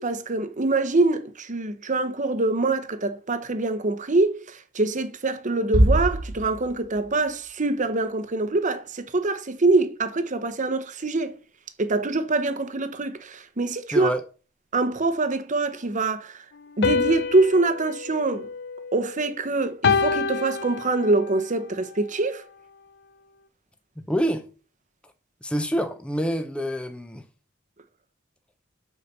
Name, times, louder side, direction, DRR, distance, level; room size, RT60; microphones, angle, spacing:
voice 1, 0.0-11.3 11.8-14.1 14.7-16.4 16.8-18.5 18.9-22.4, right 3 dB, 40° right, 0.9 m, -24 dB
Bass drum, 5.7-7.2, right 1 dB, 80° right, 1.4 m, -22 dB
voice 2, 13.9-14.2 24.0-24.4 25.4-27.2, equal, 5° left, 0.7 m, -26 dB
sound 1, 16.8-19.3 19.8-21.4, left 5 dB, 60° left, 0.6 m, -27 dB
6.9 x 5.0 x 6.7 m
head